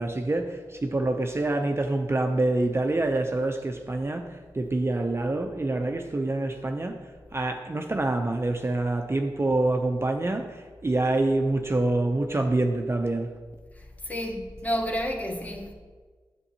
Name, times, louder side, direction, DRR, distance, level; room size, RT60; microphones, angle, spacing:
voice 1, 0.0-7.0 7.3-13.3, right 2 dB, 30° right, 0.5 m, -26 dB
voice 2, 14.0-15.7, equal, 15° left, 1.1 m, -30 dB
8.1 x 7.6 x 2.8 m
cardioid pair, 60°, 9 cm